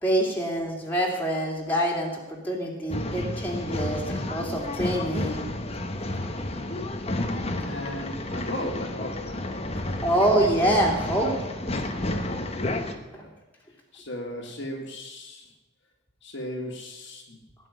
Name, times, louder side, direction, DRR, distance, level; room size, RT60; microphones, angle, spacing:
voice 1, 0.0-5.4 10.0-11.3 13.1-13.2, right 1 dB, 10° left, -2 dB, 2.8 m, -25 dB
Male speech man speaking / Chatter / Rattle, 2.9-12.9, left 1 dB, 30° left, 1.1 m, -31 dB
voice 2, 7.0-9.7 12.6-13.3 13.9-15.5 16.2-17.4, left 1 dB, 55° left, 0 dB, 2.0 m, -37 dB
17.5 x 6.1 x 9.8 m, 1.1 s
head